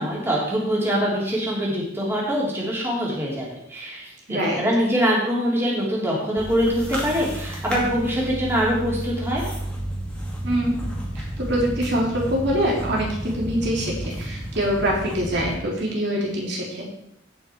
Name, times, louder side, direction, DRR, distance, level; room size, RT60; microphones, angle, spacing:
voice 1, 0.0-9.4, equal, 15° right, -5 dB, 3.3 m, -24 dB
voice 2, 4.3-4.6 10.4-16.8, equal, 60° right, -3 dB, 3.3 m, -24 dB
sound 1, 6.4-15.5, right 1 dB, 5° left, 2.4 m, -32 dB
17.5 x 6.2 x 4.6 m, 0.78 s
head